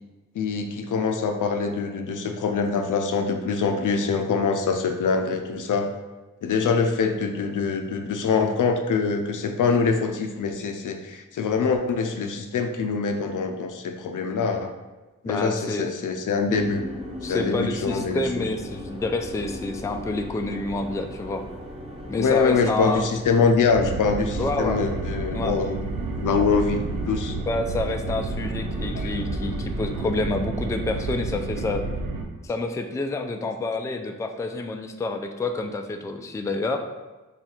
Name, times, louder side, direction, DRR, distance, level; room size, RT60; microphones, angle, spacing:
voice 1, 0.3-5.9 6.4-14.7 15.2-16.8 17.3-18.4 22.2-25.8 26.2-26.8 27.1-27.3 28.9-29.1, left 5 dB, 70° left, 5 dB, 0.5 m, -24 dB
voice 2, 15.2-15.9 16.5-16.6 17.2-21.4 22.1-23.1 24.4-24.8 25.3-25.6 27.5-31.8 32.4-36.8, left 2 dB, 10° left, 5 dB, 0.3 m, -28 dB
sound 1, 16.5-30.1, left 1 dB, 15° right, 1.0 m, -38 dB
sound 2, 23.7-32.2, right 3 dB, 85° right, 0.5 m, -30 dB
3.3 x 2.3 x 4.3 m, 1.2 s
cardioid pair, 45°, 33 cm